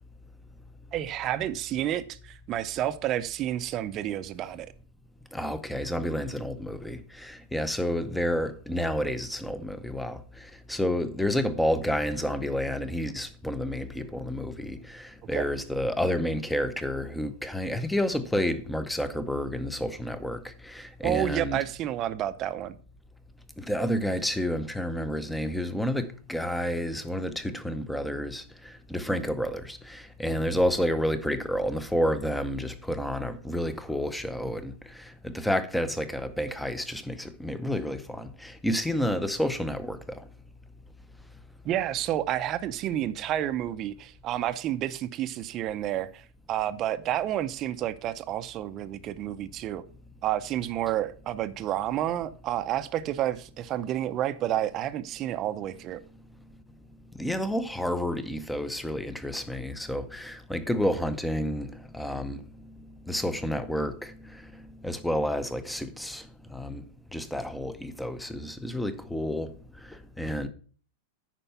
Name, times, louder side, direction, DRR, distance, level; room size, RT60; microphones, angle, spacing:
voice 1, 0.9-4.7 15.3-15.5 21.0-22.8 41.6-49.8 50.2-56.0, right 12 dB, 30° right, 0.6 m, -30 dB
voice 2, 5.3-21.6 23.6-40.2 57.1-62.4 63.1-64.4 64.8-66.8 67.1-69.5 69.9-70.5, equal, 5° left, 0.7 m, -30 dB
10.0 x 4.5 x 5.6 m
supercardioid pair, 150°, 0 cm